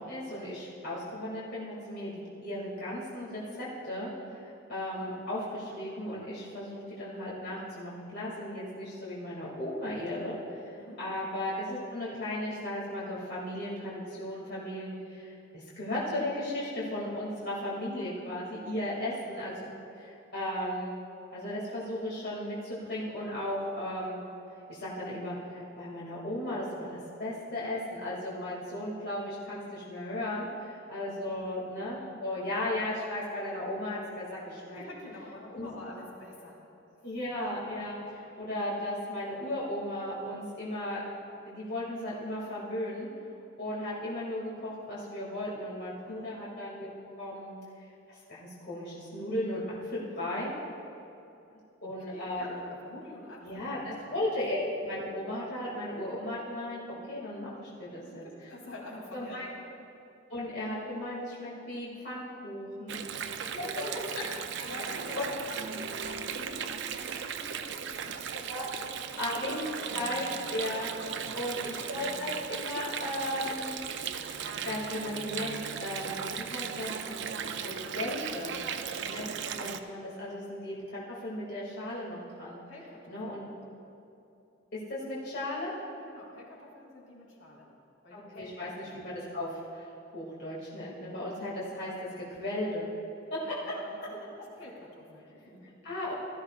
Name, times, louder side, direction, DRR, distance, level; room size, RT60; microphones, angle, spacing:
voice 1, 0.0-19.6 19.9-21.0 21.3-24.2 24.7-34.8 35.6-35.7 37.0-41.0 41.5-43.1 43.6-46.9 47.2-47.6 48.1-49.6 49.9-50.5 51.8-52.6 53.4-56.8 57.1-58.2 59.1-59.4 60.3-63.0 64.9-65.3 68.5-68.7 69.2-73.9 74.2-77.2 77.6-78.5 79.0-82.6 83.1-83.5 84.7-85.7 88.1-89.9 90.1-92.9 93.3-93.8 95.8-96.1, left 1 dB, 55° left, -7 dB, 2.4 m, -36 dB
voice 2, 31.2-31.5 31.9-32.0 34.4-36.6 37.0-37.1 46.0-46.3 51.8-54.2 58.0-59.5 63.5-64.1 64.6-69.0 71.2-71.4 82.7-83.5 86.0-87.7 88.0-89.1 93.4-95.7, left 1 dB, 80° left, -4 dB, 2.9 m, -47 dB
Water, 62.9-79.8, right 7 dB, 60° right, 0.5 m, -37 dB
17.5 x 13.5 x 2.4 m, 2.7 s
head